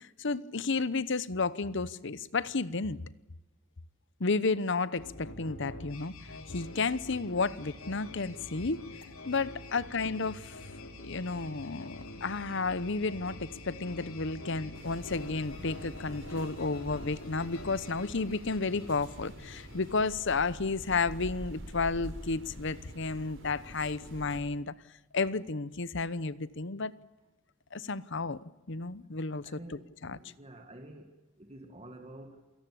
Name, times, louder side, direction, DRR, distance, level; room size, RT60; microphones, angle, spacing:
voice 1, 0.0-3.0 4.2-6.1 6.5-8.8 9.2-10.6 11.0-24.7 25.1-26.9 27.7-28.4 28.7-30.2, left 4 dB, 60° left, 0.9 m, -32 dB
sound 1, 5.0-20.5, left 1 dB, 80° left, 3.3 m, -46 dB
sound 2, 14.7-24.4, equal, 60° right, 6.0 m, -46 dB
voice 2, 29.4-31.1 31.4-32.4, right 1 dB, 30° right, 2.0 m, -49 dB
28.0 x 18.0 x 8.5 m
head